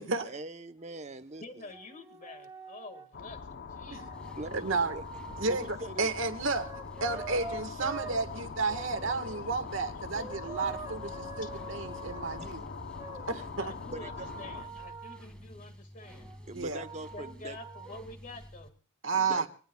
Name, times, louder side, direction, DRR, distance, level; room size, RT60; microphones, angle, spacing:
voice 1, 0.2-1.7 4.4-5.0 5.4-6.1 12.4-12.5 13.9-14.3 16.5-17.6 19.1-19.5, right 2 dB, 35° right, 0.9 m, -42 dB
sound 1, 0.8-0.9 1.6-3.1 3.9-5.7 6.2-8.2 8.6-9.4 10.1-12.5 12.9-15.2 16.0-18.0, right 4 dB, 15° right, 2.8 m, -46 dB
voice 2, 1.4-3.4 3.7-4.1 10.7-10.9 11.4-11.5 13.6-16.3 17.0-18.8, left 2 dB, 40° left, 1.9 m, -48 dB
sound 2, 3.1-14.7, left 5 dB, 60° left, 0.8 m, -43 dB
sound 3, 4.1-18.7, equal, 5° left, 1.8 m, -50 dB
voice 3, 4.5-5.0 5.4-6.7 7.0-12.6 13.3-13.7 16.5-16.8 19.0-19.4, right 4 dB, 80° right, 1.5 m, -32 dB
25.5 x 18.5 x 2.3 m
head